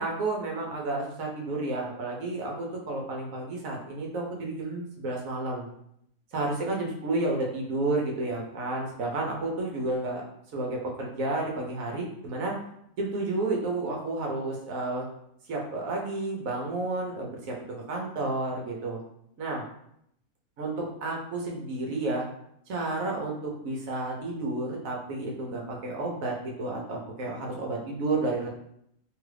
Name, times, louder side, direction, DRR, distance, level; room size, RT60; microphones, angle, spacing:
voice 1, 0.0-5.7 6.3-10.2 10.5-12.5 13.0-15.1 15.5-17.6 17.9-19.0 19.4-19.6 20.6-22.2 22.7-28.5, right 2 dB, 65° right, -1 dB, 1.0 m, -31 dB
3.1 x 2.4 x 3.2 m, 0.74 s
omnidirectional pair, 1.8 m